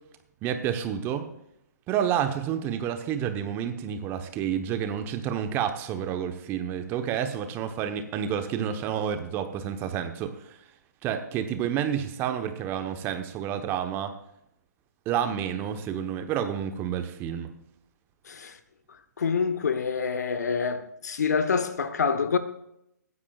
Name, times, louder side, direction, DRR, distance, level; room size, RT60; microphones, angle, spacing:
voice 1, 0.4-1.3 1.9-10.6 11.0-14.1 15.1-17.5, right 9 dB, 20° right, 1.0 m, -29 dB
voice 2, 18.2-18.6 18.9-22.4, left 5 dB, 65° left, 1.2 m, -27 dB
20.0 x 9.8 x 2.4 m
figure-of-eight pair, 135°, 10 cm